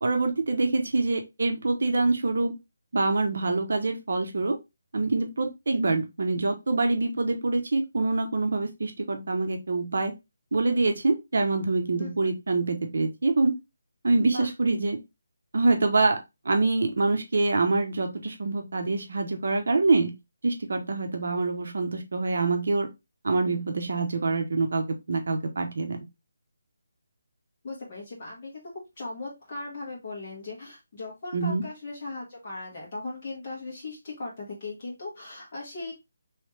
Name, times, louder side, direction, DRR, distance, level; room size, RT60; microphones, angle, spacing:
voice 1, 0.0-2.5 2.9-4.6 4.9-10.1 10.5-13.5 14.0-15.0 15.5-20.1 20.4-22.9 23.2-26.0 31.3-31.6, right 3 dB, 55° right, 5 dB, 0.7 m, -25 dB
voice 2, 12.0-12.3 14.3-14.5 27.6-28.6 29.0-35.9, left 3 dB, 25° left, -4 dB, 1.6 m, -38 dB
3.2 x 3.2 x 3.1 m, 0.23 s
hypercardioid pair, 175°, 0 cm